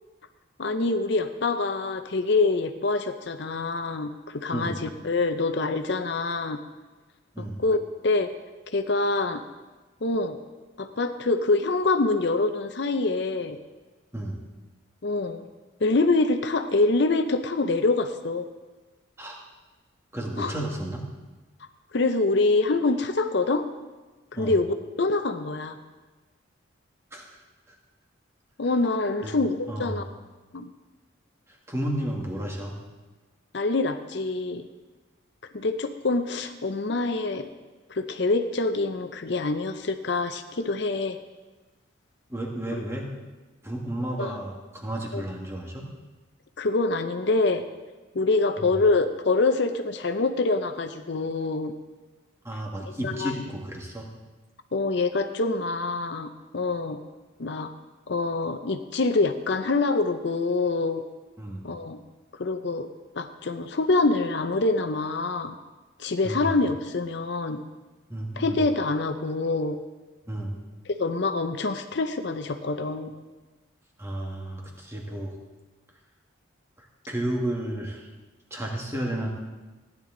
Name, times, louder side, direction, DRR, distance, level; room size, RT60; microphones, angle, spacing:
voice 1, 0.6-6.6 7.6-7.8 8.0-8.3 8.7-9.4 10.0-10.4 10.8-13.6 15.0-15.5 15.8-18.5 20.4-20.5 21.9-23.6 24.3-25.8 28.6-30.1 30.5-30.7 33.5-34.7 35.5-37.5 37.9-41.2 42.7-42.8 44.2-44.3 45.1-45.2 46.6-47.7 48.1-51.7 53.0-53.3 54.7-57.0 57.4-57.7 58.1-61.0 61.6-62.0 62.3-62.9 63.1-65.5 66.0-67.6 68.4-69.8 71.0-73.1, left 3 dB, 60° left, 8 dB, 0.6 m, -25 dB
voice 2, 20.1-21.1 24.3-24.6 27.1-27.8 29.2-29.4 29.7-30.0 31.5-32.8 42.3-43.1 43.6-45.9 48.6-48.8 52.4-54.1 61.4-61.7 66.2-66.6 68.1-68.6 70.2-70.6 74.0-75.4 76.8-78.1 78.5-79.3, right 1 dB, 15° right, 0 dB, 1.7 m, -32 dB
15.5 x 10.5 x 3.8 m, 1.2 s
head